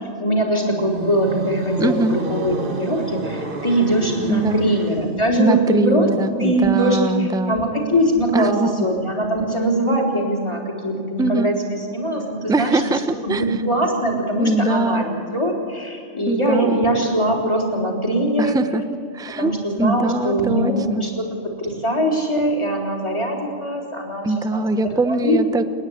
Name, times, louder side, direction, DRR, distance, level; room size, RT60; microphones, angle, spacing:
voice 1, 0.2-6.1 6.4-8.5 8.8-15.1 15.3-18.6 19.4-24.6 25.1-25.4, right 1 dB, 20° left, -1 dB, 3.7 m, -22 dB
sound 1, 0.7-5.4, right 4 dB, 45° right, 1.2 m, -30 dB
voice 2, 1.8-2.2 4.3-4.6 5.4-7.6 8.3-8.7 11.2-11.5 12.5-13.6 14.4-15.1 16.3-16.9 18.4-18.8 19.1-19.5 19.8-21.1 24.2-25.6, right 2 dB, 5° right, 11 dB, 0.4 m, -22 dB
29.5 x 9.9 x 9.8 m, 2.4 s
omnidirectional pair, 1.3 m